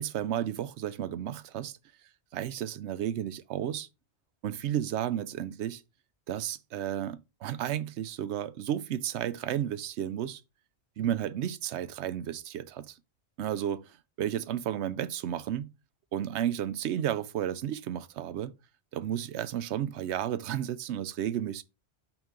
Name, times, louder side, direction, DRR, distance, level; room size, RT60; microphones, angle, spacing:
voice 1, 0.0-1.7 2.3-3.9 4.4-5.8 6.3-10.4 11.0-13.0 13.4-15.7 16.1-18.5 18.9-21.6, right 10 dB, 85° right, 0.9 m, -32 dB
6.0 x 5.2 x 3.7 m
omnidirectional pair, 1.1 m